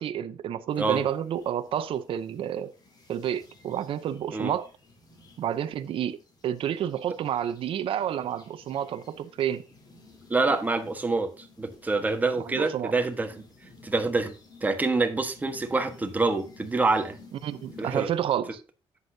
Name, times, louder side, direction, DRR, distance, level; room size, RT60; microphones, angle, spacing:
voice 1, 0.0-2.7 3.1-4.7 5.4-6.2 6.4-9.6 12.5-12.9 17.4-18.6, right 10 dB, 60° right, 0.7 m, -30 dB
sound 1, 0.7-18.2, left 3 dB, 40° left, 3.7 m, -54 dB
voice 2, 10.3-13.3 13.8-14.3 14.6-17.2 17.8-18.1, right 3 dB, 15° right, 1.4 m, -26 dB
11.0 x 8.3 x 2.8 m
cardioid pair, 130°, 10 cm